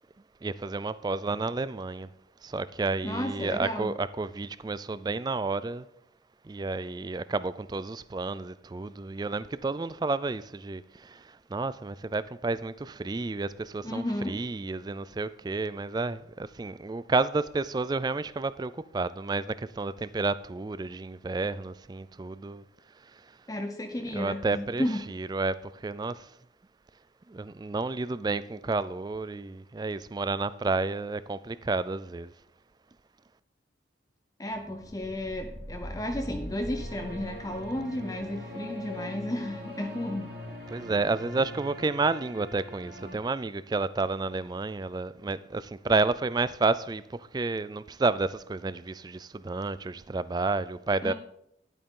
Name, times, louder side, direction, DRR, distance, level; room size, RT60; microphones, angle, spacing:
voice 1, 0.4-2.1 2.4-5.8 6.4-22.6 24.1-26.3 27.3-32.3 40.7-51.1, right 3 dB, 20° right, 0.3 m, -31 dB
voice 2, 3.0-3.9 13.8-14.4 23.5-25.0 34.4-40.3 51.0-51.1, left 1 dB, 20° left, 0.6 m, -33 dB
sound 1, 34.5-43.2, left 1 dB, 55° right, 2.7 m, -41 dB
11.0 x 8.9 x 3.8 m
head